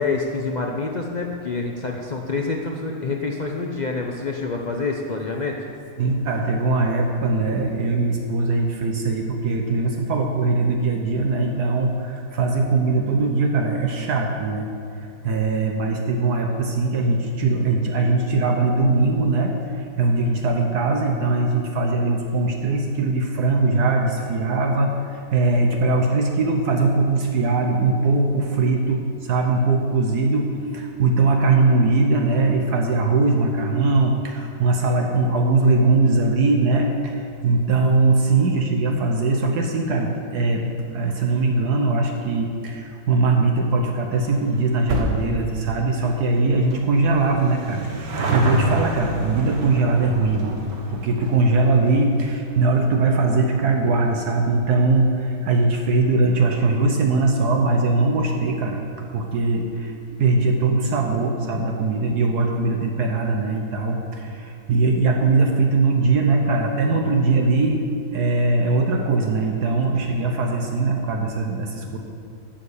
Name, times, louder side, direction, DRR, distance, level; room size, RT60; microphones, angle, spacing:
voice 1, 0.0-5.6, left 4 dB, 70° left, 1 dB, 0.4 m, -27 dB
voice 2, 6.0-50.6 50.9-58.8 59.1-67.8 68.1-72.0, right 3 dB, 70° right, 2 dB, 1.4 m, -21 dB
sound 1, 44.1-56.9 57.2-57.3 58.1-58.2 58.4-58.5 58.8-58.9, right 2 dB, 85° right, 1.9 m, -31 dB
11.5 x 6.6 x 7.0 m, 2.4 s
omnidirectional pair, 1.8 m